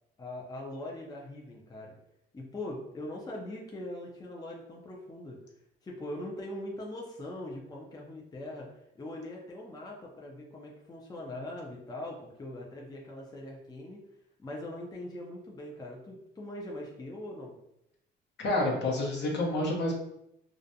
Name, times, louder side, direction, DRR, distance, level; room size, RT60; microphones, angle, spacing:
voice 1, 0.2-2.0 2.3-5.4 5.8-14.0 14.4-17.5, left 1 dB, 20° left, -2 dB, 0.5 m, -41 dB
voice 2, 18.4-19.9, left 1 dB, 60° left, -1 dB, 0.8 m, -28 dB
2.4 x 2.1 x 2.6 m, 0.80 s
cardioid pair, 90°, 20 cm